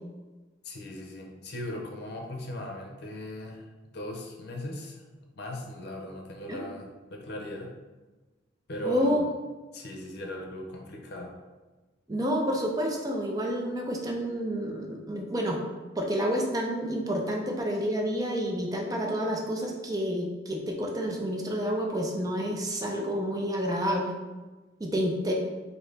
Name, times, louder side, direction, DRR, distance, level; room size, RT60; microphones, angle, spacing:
voice 1, 0.6-3.7 3.9-5.0 5.3-7.7 8.7-9.4 9.7-11.4, left 1 dB, 60° left, 1 dB, 0.6 m, -38 dB
voice 2, 8.8-9.2 12.1-15.6 16.0-24.1 24.8-25.3, equal, 20° right, 0 dB, 0.5 m, -29 dB
4.0 x 2.8 x 3.2 m, 1.2 s
head